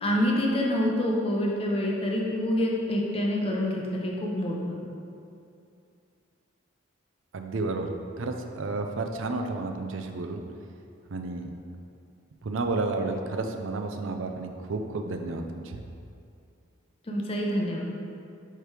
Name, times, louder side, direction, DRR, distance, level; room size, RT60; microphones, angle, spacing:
voice 1, 0.0-4.8 17.1-17.8, left 1 dB, 30° left, -2 dB, 0.7 m, -27 dB
voice 2, 7.3-10.4 11.1-11.5 12.4-15.8, right 3 dB, 75° right, 4 dB, 0.5 m, -31 dB
4.9 x 4.5 x 4.7 m, 2.5 s
head